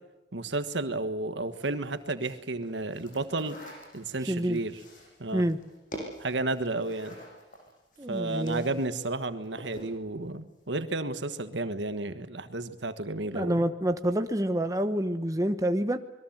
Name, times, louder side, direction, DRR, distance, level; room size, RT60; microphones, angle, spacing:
voice 1, 0.3-3.6 3.9-4.8 5.2-5.4 6.2-7.2 8.1-13.7, right 2 dB, 80° right, 10 dB, 1.5 m, -32 dB
sound 1, 1.5-8.9 9.2-10.0, equal, 45° left, 7.0 m, -47 dB
voice 2, 4.3-4.6 5.3-5.6 8.0-8.7 13.3-16.0, right 1 dB, 20° right, 8 dB, 0.9 m, -27 dB
26.5 x 21.5 x 7.5 m, 1.1 s
head